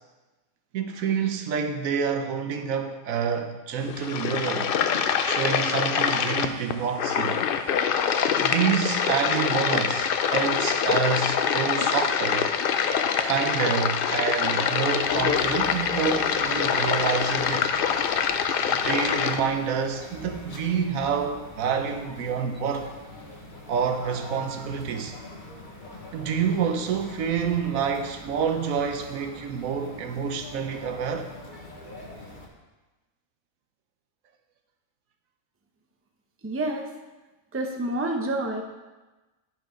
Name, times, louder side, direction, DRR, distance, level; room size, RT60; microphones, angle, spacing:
voice 1, 0.7-4.7 5.2-7.4 8.4-12.5 13.2-17.8 18.7-22.9 23.7-25.1 26.1-31.3, right 6 dB, 75° right, 6 dB, 1.1 m, -28 dB
sound 1, 3.8-19.4, left 7 dB, 65° left, 0.5 m, -25 dB
sound 2, 15.0-32.5, left 1 dB, 35° left, 1.2 m, -43 dB
voice 2, 36.4-36.9 37.5-38.6, right 1 dB, 15° right, 2 dB, 0.6 m, -28 dB
10.5 x 4.7 x 5.1 m, 1.1 s
omnidirectional pair, 1.5 m